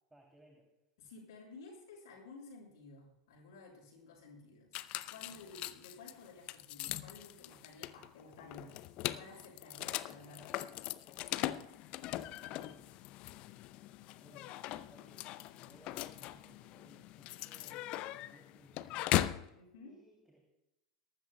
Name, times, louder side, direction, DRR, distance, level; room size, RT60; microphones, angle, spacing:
voice 1, 0.1-0.7 9.9-10.8 11.1-11.4 12.4-13.0 14.2-14.6 14.9-19.3 19.8-20.5, right 1 dB, 5° right, 0 dB, 2.9 m, -63 dB
voice 2, 1.0-8.8 9.1-10.5 19.5-20.0, left 3 dB, 65° left, 0 dB, 6.0 m, -54 dB
sound 1, 4.7-19.5, left 15 dB, 45° left, 0.6 m, -40 dB
22.5 x 12.5 x 2.3 m, 0.90 s
figure-of-eight pair, 80°, 2 cm